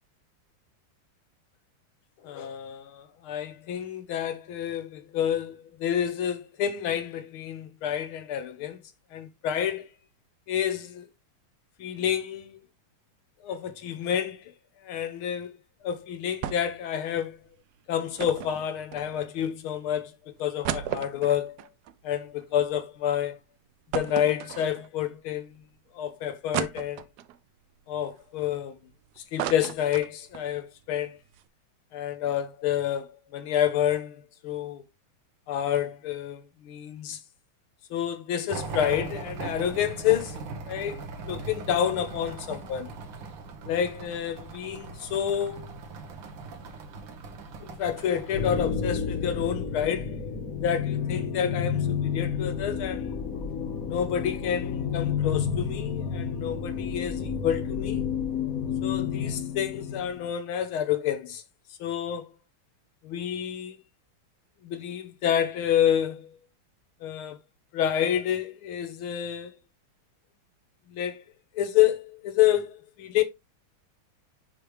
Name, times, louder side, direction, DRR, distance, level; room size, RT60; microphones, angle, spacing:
voice 1, 2.2-8.8 9.1-9.9 10.5-11.1 11.8-12.6 13.4-14.4 14.8-15.5 15.8-17.4 17.9-21.6 22.0-23.4 23.9-25.5 25.9-27.0 27.9-28.8 29.3-31.2 31.9-34.8 35.5-37.2 37.9-42.9 43.6-45.8 47.6-50.2 50.6-53.2 53.9-58.0 58.8-61.4 61.8-62.3 63.0-63.8 64.6-66.4 67.0-67.4 67.7-69.6 70.9-71.2 71.5-73.2, left 10 dB, 75° left, 1.7 m, -29 dB
sound 1, 16.4-16.8 17.1-17.2 18.2-19.4 20.0-20.1 20.4-22.8 23.2-23.3 23.9-25.1 25.6-25.7 26.5-27.4 27.9-28.9 29.2-30.5 30.8-30.9 31.2-31.4, right 11 dB, 85° right, 0.8 m, -35 dB
sound 2, 38.5-48.5, right 4 dB, 65° right, 1.7 m, -39 dB
sound 3, 48.3-60.3, left 7 dB, 50° left, 1.2 m, -30 dB
9.6 x 3.3 x 3.1 m
omnidirectional pair, 2.4 m